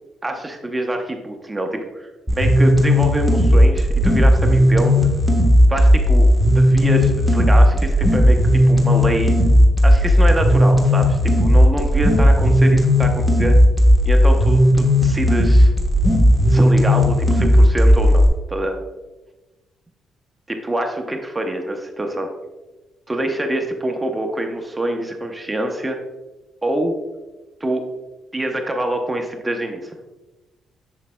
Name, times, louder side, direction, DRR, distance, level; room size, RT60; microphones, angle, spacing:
voice 1, 0.2-4.9 5.7-9.3 9.8-13.6 14.1-15.7 16.4-18.8 20.5-22.3 23.1-26.0 26.6-26.9 27.6-27.9 28.3-29.9, right 1 dB, 15° right, 4 dB, 0.8 m, -25 dB
sound 1, 2.3-18.3, equal, ahead, 1.3 m, -14 dB
7.2 x 6.4 x 2.2 m, 1.1 s
cardioid pair, 90°, 0 cm